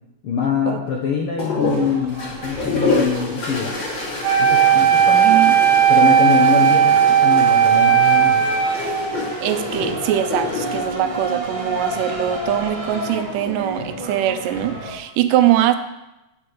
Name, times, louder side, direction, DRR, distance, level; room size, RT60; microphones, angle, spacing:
voice 1, 0.2-3.7 4.4-5.6 5.9-8.4, left 6 dB, 75° left, -1 dB, 1.3 m, -24 dB
sound 1, 1.4-12.1 13.2-13.8, left 3 dB, 40° left, 2.3 m, -28 dB
sound 2, 1.8-14.9, equal, 30° right, 0.8 m, -32 dB
Wind instrument woodwind instrument, 4.2-9.3, right 9 dB, 65° right, 1.6 m, -15 dB
voice 2, 5.2-5.5 9.4-15.8, right 12 dB, 90° right, 9 dB, 2.3 m, -22 dB
8.7 x 5.4 x 6.3 m, 0.95 s
omnidirectional pair, 3.7 m